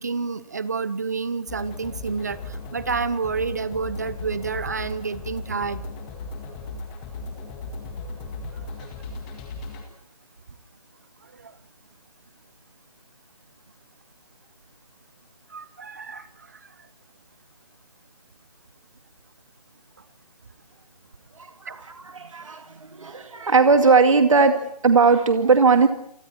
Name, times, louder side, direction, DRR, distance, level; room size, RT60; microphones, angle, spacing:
voice 1, 0.0-5.8 11.3-11.5 15.5-16.6 21.7-21.8, right 5 dB, 25° right, 16 dB, 0.8 m, -29 dB
sound 1, 1.5-9.8, left 3 dB, 10° left, 1.9 m, -36 dB
voice 2, 21.3-25.9, right 4 dB, 50° right, 6 dB, 2.3 m, -19 dB
29.0 x 25.0 x 4.4 m, 0.70 s
hypercardioid pair, 175°, 21 cm